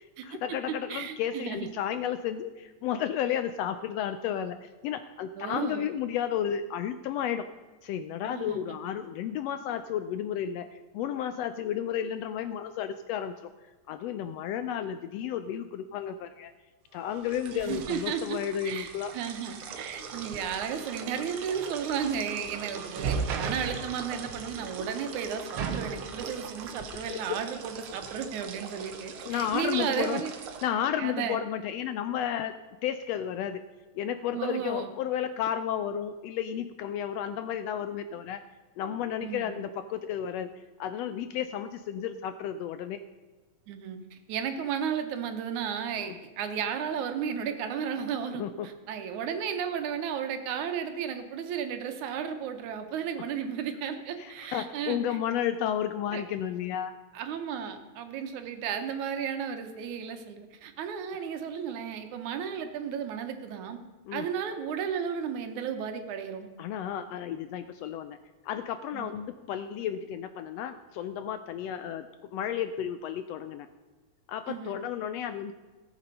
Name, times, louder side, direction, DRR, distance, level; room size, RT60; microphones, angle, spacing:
voice 1, 0.0-7.5 7.8-13.5 13.9-16.5 16.9-19.1 26.9-27.4 29.2-30.2 30.6-32.5 32.8-33.6 33.9-38.4 38.8-43.0 46.0-46.1 48.3-48.7 54.2-56.9 64.1-64.3 66.6-68.2 68.4-73.7 74.3-75.5, left 9 dB, 80° left, 11 dB, 1.5 m, -32 dB
voice 2, 0.9-1.7 5.4-5.9 8.2-8.8 17.5-18.4 18.7-18.9 19.1-30.3 31.0-31.4 34.3-34.9 39.2-39.6 43.7-55.2 56.1-56.2 57.1-63.8 64.1-66.5 68.9-69.1 74.5-74.8, right 7 dB, 85° right, 7 dB, 2.5 m, -34 dB
sound 1, 17.1-30.6, right 5 dB, 60° right, 1.5 m, -38 dB
17.5 x 7.3 x 5.4 m, 1.3 s
omnidirectional pair, 3.3 m